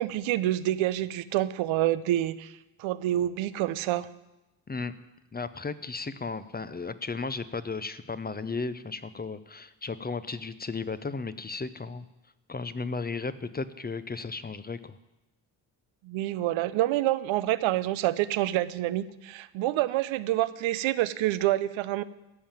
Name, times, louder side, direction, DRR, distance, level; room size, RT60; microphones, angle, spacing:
voice 1, 0.0-2.5 2.8-4.1 16.0-22.0, right 14 dB, 85° right, 14 dB, 0.7 m, -27 dB
voice 2, 5.3-12.0 12.5-15.0, left 4 dB, 20° left, 13 dB, 0.7 m, -35 dB
14.5 x 5.6 x 9.0 m, 0.97 s
supercardioid pair, 65°, 46 cm